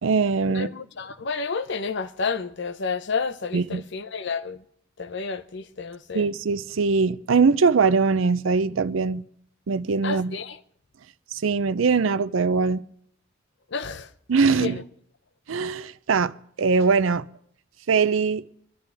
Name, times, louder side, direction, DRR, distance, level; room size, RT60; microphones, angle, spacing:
voice 1, 0.0-0.7 3.5-3.8 6.1-9.2 9.7-10.4 11.3-12.8 14.3-14.8 15.5-17.3 17.9-18.4, right 5 dB, 80° right, 0.5 m, -22 dB
voice 2, 0.5-4.6 5.0-6.3 10.0-10.6 13.7-14.1 14.6-14.8, left 5 dB, 60° left, 0.8 m, -30 dB
24.5 x 11.5 x 3.5 m
head